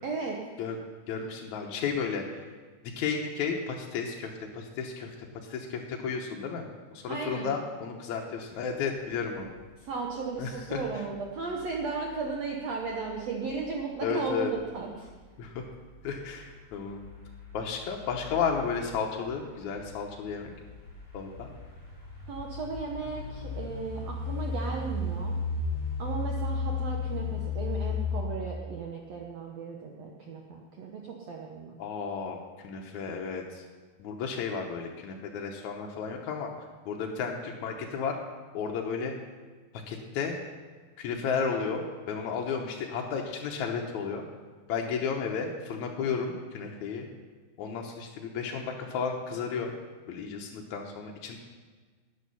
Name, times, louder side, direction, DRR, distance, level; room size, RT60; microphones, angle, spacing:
voice 1, 0.0-0.4 7.1-7.5 9.8-15.1 22.3-25.4 26.0-31.0 31.3-31.7, right 4 dB, 80° right, 0 dB, 1.5 m, -35 dB
voice 2, 1.1-2.2 3.0-5.1 5.5-6.7 6.9-9.5 10.4-11.0 14.0-14.5 15.4-15.6 16.0-17.0 17.5-20.5 21.1-21.5 31.8-32.4 32.6-33.6 34.0-36.5 36.9-38.2 38.5-39.1 39.9-40.3 41.0-44.2 44.7-47.1 47.6-49.7 50.1-51.4, left 6 dB, 75° left, 1 dB, 1.7 m, -33 dB
sound 1, 9.1-28.2, left 4 dB, 5° left, 4.0 m, -37 dB
13.0 x 9.2 x 5.5 m, 1.4 s
omnidirectional pair, 4.6 m